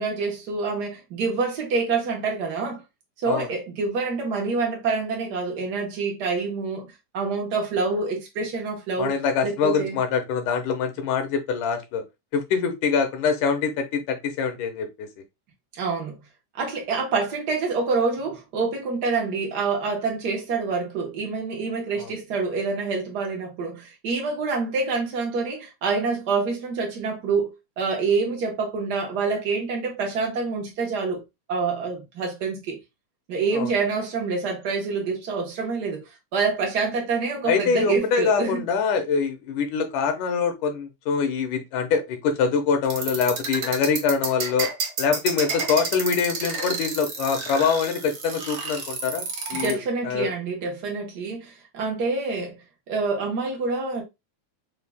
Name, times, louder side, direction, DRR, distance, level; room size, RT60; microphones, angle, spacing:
voice 1, 0.0-2.8 3.2-9.1 9.4-10.0 15.7-16.2 16.5-27.5 27.8-31.2 31.5-32.8 33.3-36.0 36.3-38.6 49.5-52.6 52.9-54.0, right 4 dB, 80° right, 0.9 m, -26 dB
voice 2, 9.0-12.0 12.3-15.1 22.0-22.1 33.5-33.7 37.5-44.7 45.0-50.3, left 6 dB, 75° left, 2.3 m, -24 dB
sound 1, 42.8-49.7, right 5 dB, 60° right, 1.3 m, -30 dB
5.5 x 2.3 x 3.4 m
omnidirectional pair, 3.7 m